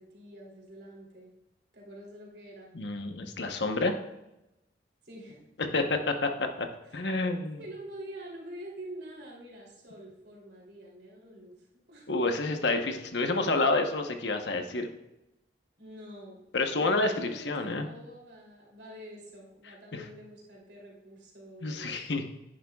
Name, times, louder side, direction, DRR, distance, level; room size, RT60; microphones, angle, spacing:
voice 1, 0.0-1.3 1.7-2.7 5.0-5.5 6.8-7.0 7.6-12.1 15.8-16.4 16.7-22.1, right 1 dB, 70° right, -3 dB, 3.1 m, -47 dB
voice 2, 2.7-4.0 5.7-6.7 6.9-7.6 12.1-14.9 16.5-17.9 19.9-20.1 21.6-22.2, left 2 dB, 80° left, 5 dB, 1.1 m, -29 dB
10.0 x 10.0 x 2.4 m, 0.92 s
head